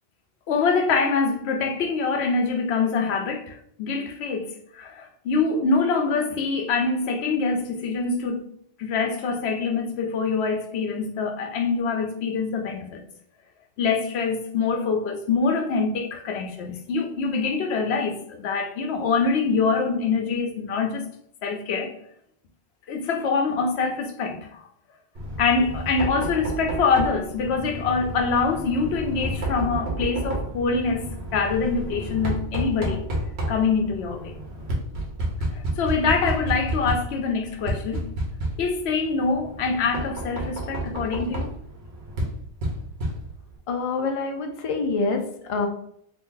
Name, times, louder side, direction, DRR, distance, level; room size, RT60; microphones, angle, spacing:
voice 1, 0.5-8.4 8.8-13.0 13.8-21.0 21.4-21.9 22.9-24.7 25.4-33.1 33.5-34.4 35.5-38.1 38.6-41.5, left 4 dB, 85° left, 0.9 m, -25 dB
Knock, 25.1-43.6, right 1 dB, 85° right, 1.2 m, -31 dB
voice 2, 43.7-45.7, left 3 dB, 45° left, 0.5 m, -26 dB
2.8 x 2.6 x 3.7 m
omnidirectional pair, 1.1 m